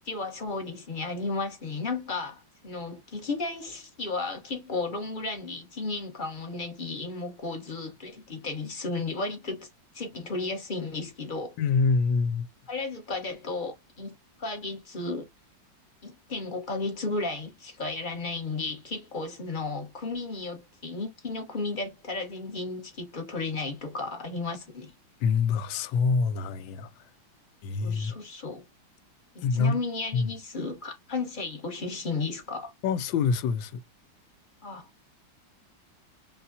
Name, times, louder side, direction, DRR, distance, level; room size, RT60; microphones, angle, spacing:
voice 1, 0.0-9.7 9.9-11.6 12.7-15.3 16.0-24.9 27.8-28.6 29.3-32.7 34.6-34.9, left 3 dB, 35° left, 0.9 m, -34 dB
voice 2, 11.6-12.5 25.2-26.9 27.6-28.1 29.4-29.8 30.1-30.3 32.8-33.8, left 5 dB, 85° left, 1.3 m, -25 dB
5.6 x 2.2 x 2.6 m
omnidirectional pair, 2.0 m